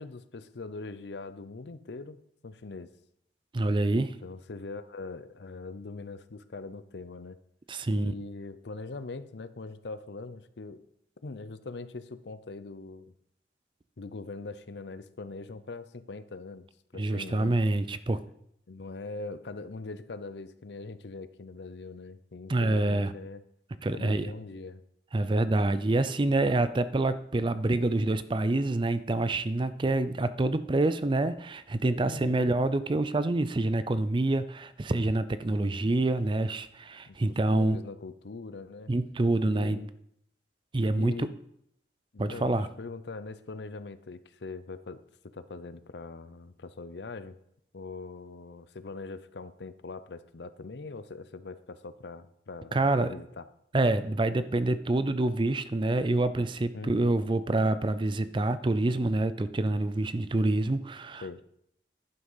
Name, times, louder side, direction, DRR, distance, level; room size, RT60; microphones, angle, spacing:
voice 1, 0.0-2.9 3.9-7.4 7.9-10.8 11.2-13.1 14.0-16.7 16.9-17.6 18.7-23.4 23.9-24.8 32.0-32.6 35.6-35.8 37.1-38.9 39.5-39.9 40.9-41.3 42.1-45.0 45.3-47.4 47.7-53.5 56.7-57.1 61.2-61.4, left 3 dB, 70° left, 13 dB, 0.6 m, -42 dB
voice 2, 3.5-4.1 7.7-8.1 17.0-18.2 22.5-23.1 23.8-24.3 25.1-37.8 38.9-39.8 40.7-41.3 42.2-42.7 52.7-53.1 53.7-61.4, right 2 dB, 25° right, 14 dB, 0.4 m, -27 dB
11.0 x 6.2 x 5.6 m, 0.74 s
head